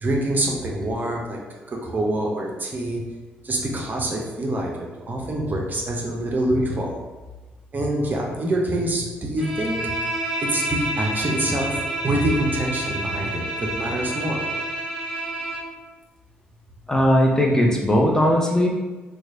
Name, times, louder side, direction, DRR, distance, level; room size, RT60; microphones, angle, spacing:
voice 1, 0.0-1.4 1.7-3.0 3.4-4.7 5.1-7.0 7.7-10.1 10.4-14.4, right 1 dB, 35° right, -1 dB, 0.7 m, -25 dB
Bowed string instrument, 9.4-15.7, right 1 dB, 5° right, 1.4 m, -29 dB
voice 2, 16.9-18.7, equal, 10° left, -1 dB, 0.8 m, -18 dB
3.1 x 2.3 x 3.8 m, 1.2 s
hypercardioid pair, 40°, 5 cm